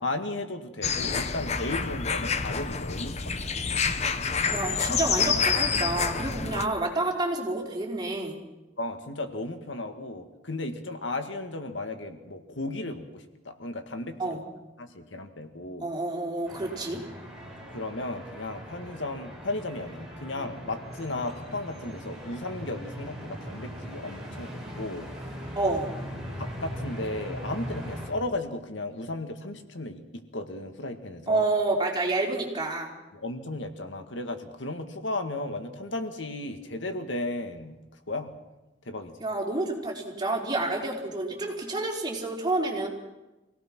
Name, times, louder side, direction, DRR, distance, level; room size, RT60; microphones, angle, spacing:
voice 1, 0.0-3.4 5.0-5.1 8.8-14.4 14.8-15.9 17.7-25.1 26.2-31.4 33.1-37.8 38.1-38.3 38.9-39.1, left 2 dB, 85° left, 7 dB, 2.0 m, -35 dB
sound 1, 0.8-6.6, left 5 dB, 35° left, 1.0 m, -28 dB
voice 2, 4.5-8.4 14.2-14.4 15.8-17.0 25.6-25.9 31.3-32.9 39.2-42.9, right 2 dB, 25° right, -2 dB, 4.4 m, -29 dB
sound 2, 16.4-28.1, equal, ahead, 6.5 m, -40 dB
26.0 x 17.5 x 6.2 m, 1.1 s
head